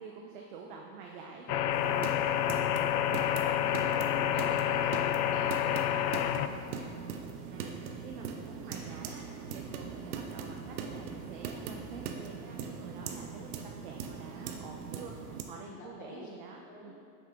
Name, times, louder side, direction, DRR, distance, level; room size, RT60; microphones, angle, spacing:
voice 1, 0.0-2.2 7.5-16.9, right 5 dB, 35° right, 0 dB, 0.4 m, -48 dB
sound 1, 1.5-6.5, left 11 dB, 80° left, 0.5 m, -29 dB
sound 2, 1.7-15.4, right 6 dB, 75° right, 0.9 m, -41 dB
voice 2, 3.6-5.0 5.3-7.0 15.5-16.3 16.6-16.9, left 2 dB, 20° left, -2 dB, 0.6 m, -48 dB
8.6 x 6.6 x 3.4 m, 2.5 s
supercardioid pair, 170°, 46 cm